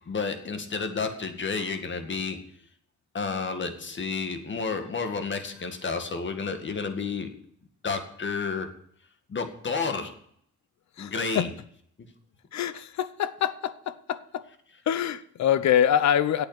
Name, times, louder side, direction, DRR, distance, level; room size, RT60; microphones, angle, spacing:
voice 1, 0.1-2.4 3.1-7.3 7.8-8.7 9.3-10.1 11.0-11.5 12.0-12.1, left 4 dB, 40° left, 7 dB, 2.0 m, -31 dB
voice 2, 11.0-11.5 12.5-14.4 14.9-16.5, left 10 dB, 65° left, 15 dB, 0.9 m, -25 dB
8.8 x 8.6 x 8.1 m, 0.66 s
cardioid pair, 90°, 30 cm